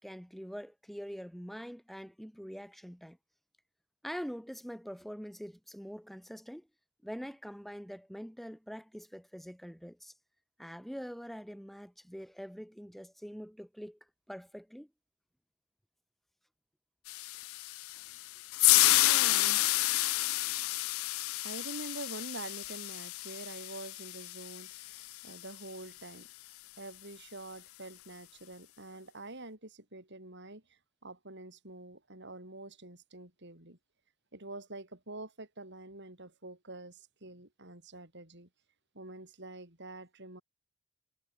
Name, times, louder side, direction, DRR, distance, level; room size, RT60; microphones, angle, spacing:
voice 1, 0.0-3.2 4.0-6.7 7.0-10.1 10.6-14.0 14.3-14.9, equal, ahead, 5.8 m, -44 dB
sound 1, 17.1-25.4, left 19 dB, 70° left, 0.4 m, -30 dB
voice 2, 18.1-26.3 26.8-33.8 34.3-38.5 38.9-40.4, right 2 dB, 50° right, 7.0 m, -47 dB
head